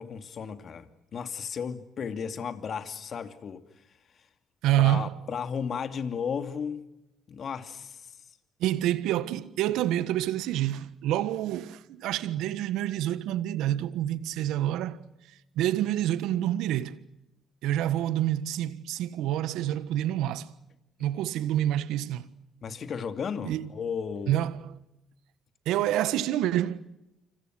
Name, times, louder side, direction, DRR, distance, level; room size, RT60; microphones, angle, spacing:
voice 1, 0.0-3.6 4.8-6.9 7.3-8.1 22.6-24.5, left 6 dB, 55° left, 2.6 m, -34 dB
voice 2, 4.6-5.1 8.6-15.0 15.5-17.0 17.6-20.5 21.0-22.3 23.4-23.7 24.3-24.7 25.6-26.8, right 12 dB, 75° right, 1.4 m, -27 dB
29.0 x 26.5 x 6.3 m
supercardioid pair, 60°, 0 cm